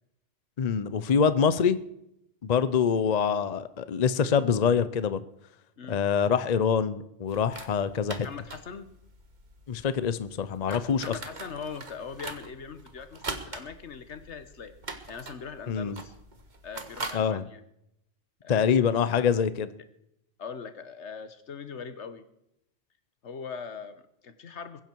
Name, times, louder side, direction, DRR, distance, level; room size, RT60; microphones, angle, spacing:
voice 1, 0.6-1.8 2.4-5.2 5.9-8.3 9.7-11.1 15.7-16.0 17.1-17.4 18.5-19.7, left 7 dB, 40° left, 14 dB, 0.7 m, -25 dB
sound 1, 7.3-17.1, right 3 dB, 40° right, 1.5 m, -43 dB
voice 2, 8.2-8.9 10.7-14.7 15.1-16.1 16.6-17.6 18.4-19.4 20.4-22.2 23.2-24.8, left 6 dB, 75° left, 11 dB, 1.4 m, -41 dB
22.0 x 10.5 x 4.6 m, 0.81 s
omnidirectional pair, 1.2 m